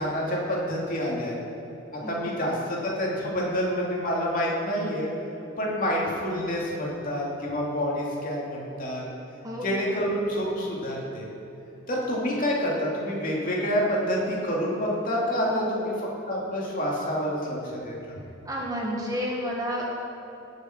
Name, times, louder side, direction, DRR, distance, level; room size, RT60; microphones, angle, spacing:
voice 1, 0.0-1.3 2.1-5.1 5.6-9.0 9.6-11.3 11.9-15.9 16.3-17.6 17.8-17.9, equal, 45° left, -4 dB, 2.8 m, -27 dB
voice 2, 2.0-2.3 9.4-9.9 15.4-15.9 18.4-19.9, equal, 20° right, -2 dB, 1.5 m, -31 dB
18.5 x 7.2 x 4.6 m, 2.9 s
head